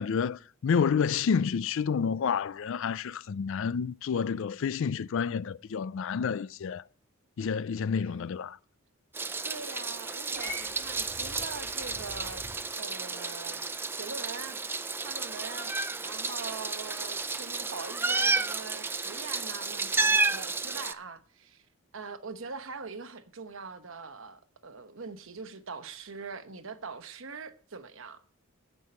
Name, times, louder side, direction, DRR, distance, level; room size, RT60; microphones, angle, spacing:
voice 1, 0.0-6.8 7.4-8.6, left 6 dB, 60° left, 0.4 m, -29 dB
Meow, 9.1-20.9, right 3 dB, 10° right, 0.4 m, -32 dB
voice 2, 9.4-12.4 12.8-14.6 15.0-15.7 16.0-21.7 21.9-28.2, right 4 dB, 60° right, 1.0 m, -42 dB
Purr / Meow, 10.3-12.6, equal, 35° right, 2.6 m, -44 dB
16.0 x 5.5 x 4.4 m
head